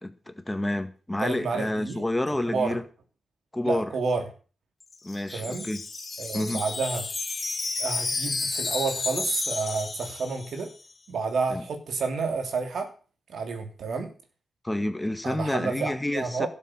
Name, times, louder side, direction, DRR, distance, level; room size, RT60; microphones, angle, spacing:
voice 1, 0.0-2.8 3.5-3.9 5.0-5.8 6.3-6.6 11.5-11.6 14.6-16.5, left 1 dB, 15° left, 1.8 m, -29 dB
voice 2, 1.2-2.0 2.4-2.8 3.6-4.2 5.3-5.7 6.2-7.1 7.8-10.7 11.1-12.9 13.3-14.1 15.2-16.5, right 4 dB, 75° right, 2.9 m, -30 dB
Wind chime, 4.8-10.8, left 4 dB, 45° left, 2.1 m, -32 dB
12.5 x 7.5 x 7.8 m
cardioid pair, 65°, 0 cm